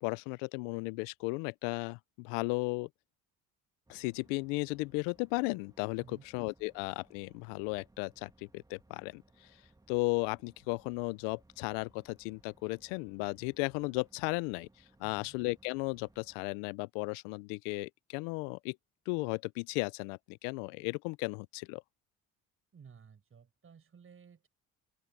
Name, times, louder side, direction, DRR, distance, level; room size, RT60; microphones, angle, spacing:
voice 1, 0.0-2.9 3.9-9.2 9.9-14.7 15.0-18.8 19.1-21.8, left 28 dB, 90° left, 0.5 m, -35 dB
sound 1, 3.8-16.4, right 2 dB, 10° right, 2.1 m, -65 dB
voice 2, 15.0-15.3 22.7-24.5, right 6 dB, 40° right, 7.9 m, -56 dB
open air
supercardioid pair, 80°, 33 cm